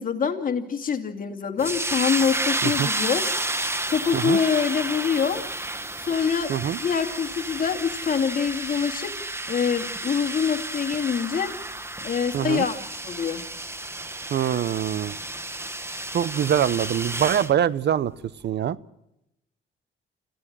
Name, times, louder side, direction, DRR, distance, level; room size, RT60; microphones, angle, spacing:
voice 1, 0.0-3.4 3.9-5.5 6.0-6.5 6.8-11.5 12.0-13.4, left 6 dB, 45° left, 5 dB, 2.5 m, -25 dB
sound 1, 1.6-17.5, right 2 dB, 10° right, 1.2 m, -31 dB
voice 2, 12.3-12.7 14.3-15.2 16.1-18.1 18.4-18.8, right 10 dB, 60° right, 19 dB, 0.7 m, -24 dB
26.5 x 15.5 x 7.4 m, 0.84 s
cardioid pair, 90°, 20 cm